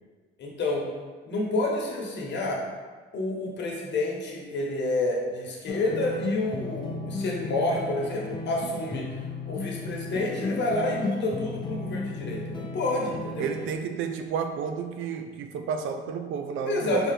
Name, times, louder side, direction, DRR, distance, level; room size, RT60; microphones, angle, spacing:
voice 1, 0.4-0.8 1.3-2.6 3.1-9.2 9.5-13.5 16.7-17.1, left 2 dB, 60° left, -1 dB, 1.0 m, -29 dB
sound 1, 5.7-13.7, left 2 dB, 25° left, 0.4 m, -34 dB
voice 2, 13.4-17.1, right 6 dB, 80° right, 6 dB, 0.5 m, -31 dB
4.3 x 2.7 x 3.7 m, 1.4 s
cardioid pair, 90°, 20 cm